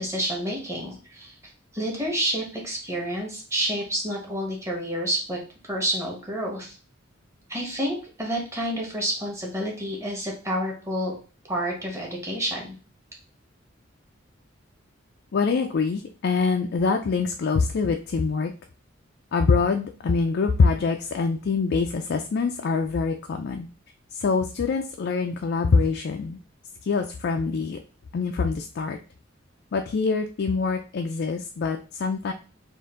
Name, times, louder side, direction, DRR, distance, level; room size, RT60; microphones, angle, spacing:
voice 1, 0.0-1.4 1.7-5.4 5.7-6.8 7.5-11.1 11.5-12.7, equal, 15° right, -1 dB, 1.2 m, -29 dB
voice 2, 15.3-18.5 19.3-23.7 24.1-26.4 26.8-27.8 28.1-29.0 29.7-32.3, left 4 dB, 55° left, 4 dB, 0.4 m, -24 dB
4.4 x 2.5 x 3.6 m, 0.37 s
head